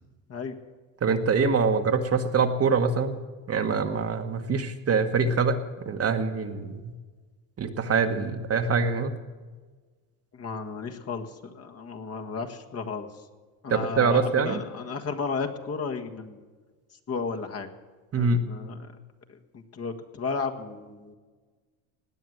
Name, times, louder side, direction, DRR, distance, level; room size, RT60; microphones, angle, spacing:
voice 1, 1.0-3.2 3.5-5.6 5.8-6.9 7.6-9.1 13.7-14.6 18.1-18.4, right 5 dB, 35° right, 6 dB, 1.4 m, -24 dB
voice 2, 10.3-13.1 13.6-16.4 17.1-17.7 18.2-18.9 19.3-21.1, left 5 dB, 35° left, 4 dB, 1.6 m, -34 dB
18.0 x 9.3 x 7.8 m, 1.4 s
supercardioid pair, 100°, 42 cm